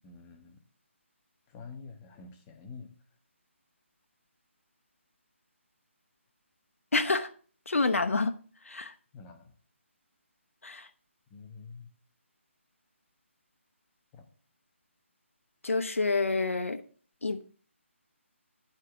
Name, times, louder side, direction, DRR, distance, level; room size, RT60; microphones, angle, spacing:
voice 1, 0.0-0.6 1.5-3.0 9.1-9.5 11.3-11.9 14.1-14.2, left 4 dB, 15° left, 5 dB, 0.9 m, -47 dB
voice 2, 6.9-7.3 7.7-8.3 8.7-8.9 10.6-10.9 15.6-16.8 17.2-17.4, left 3 dB, 90° left, 7 dB, 0.9 m, -28 dB
9.2 x 4.8 x 7.0 m, 0.43 s
hypercardioid pair, 160°, 7 cm